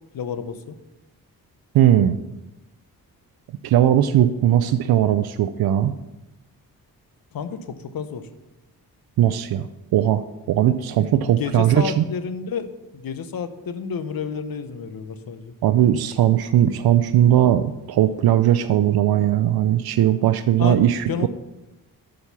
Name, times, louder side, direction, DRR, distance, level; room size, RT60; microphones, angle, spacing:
voice 1, 0.1-0.8 7.3-8.3 11.0-15.5 20.6-21.3, left 6 dB, 65° left, 11 dB, 0.9 m, -30 dB
voice 2, 1.7-2.2 3.6-5.9 9.2-10.2 10.5-12.0 15.6-21.3, right 11 dB, 80° right, 11 dB, 0.5 m, -18 dB
7.2 x 6.2 x 6.9 m, 0.99 s
cardioid pair, 60°, 37 cm